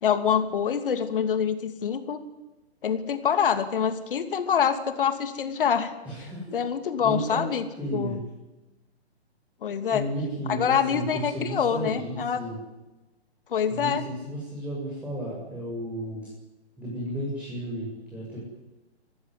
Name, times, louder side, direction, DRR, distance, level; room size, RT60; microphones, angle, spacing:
voice 1, 0.0-2.2 2.8-5.9 6.5-7.6 7.9-8.2 9.6-10.0 10.5-12.4 13.5-14.0, left 7 dB, 55° left, 10 dB, 2.7 m, -25 dB
voice 2, 6.0-6.4 7.0-7.4 7.8-8.2 9.9-12.6 13.7-16.3 16.8-18.4, right 1 dB, 5° right, -5 dB, 7.5 m, -33 dB
26.0 x 15.0 x 9.8 m, 1.1 s
figure-of-eight pair, 135°, 33 cm